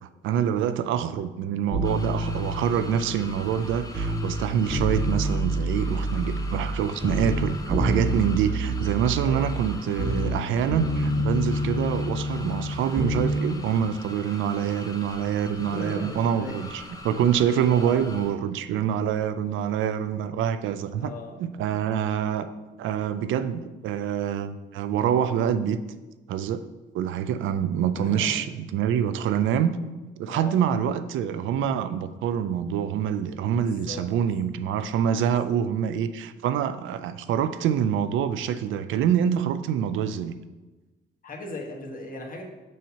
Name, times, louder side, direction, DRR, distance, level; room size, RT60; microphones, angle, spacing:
voice 1, 0.0-21.1 21.4-22.5 22.8-25.8 26.3-26.6 26.9-29.8 30.2-40.4, right 9 dB, 80° right, 11 dB, 0.4 m, -26 dB
sound 1, 1.7-4.4 4.7-6.8 7.0-10.4 10.7-13.3 13.6-13.7, right 1 dB, 20° right, 1.3 m, -27 dB
sound 2, 1.8-18.3, left 2 dB, 20° left, 0.7 m, -43 dB
voice 2, 9.2-9.5 15.5-16.6 17.7-18.0 21.0-21.4 28.0-28.5 30.2-30.6 33.5-34.1 35.3-35.6 41.2-42.4, left 2 dB, 45° left, 0 dB, 1.3 m, -38 dB
6.2 x 2.8 x 5.6 m, 1.2 s
cardioid pair, 90°, 20 cm